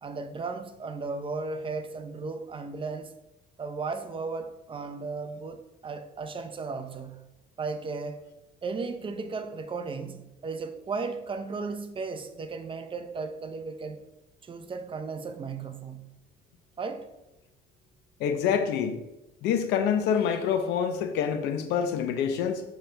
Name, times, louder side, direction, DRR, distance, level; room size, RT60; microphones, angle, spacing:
voice 1, 0.0-3.1 3.6-7.2 7.6-8.2 8.6-14.0 14.4-16.1 16.8-17.1, right 4 dB, 30° right, 0.8 m, -35 dB
voice 2, 18.2-19.0 19.4-22.6, left 7 dB, 90° left, 0.9 m, -26 dB
7.5 x 6.8 x 3.4 m
cardioid pair, 110°, 17 cm